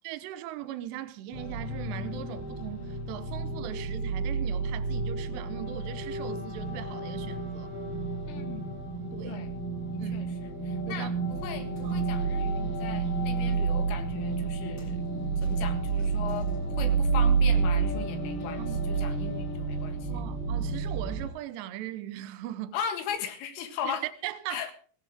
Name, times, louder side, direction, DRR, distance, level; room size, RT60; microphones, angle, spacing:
voice 1, 0.0-7.7 9.1-9.4 10.0-10.2 10.9-11.1 11.8-12.0 16.9-17.0 18.6-18.9 20.1-22.7 23.8-24.0 24.2-24.7, right 12 dB, 75° right, 2.8 m, -39 dB
sound 1, 1.3-21.3, right 4 dB, 50° left, 6.5 m, -30 dB
voice 2, 8.2-8.8 9.3-9.5 9.9-15.0 15.4-16.5 16.8-20.1 22.7-24.0 24.5-24.7, left 8 dB, 75° left, 4.0 m, -38 dB
sound 2, 11.3-17.1, right 2 dB, 25° left, 5.0 m, -54 dB
17.0 x 16.0 x 3.7 m
omnidirectional pair, 5.9 m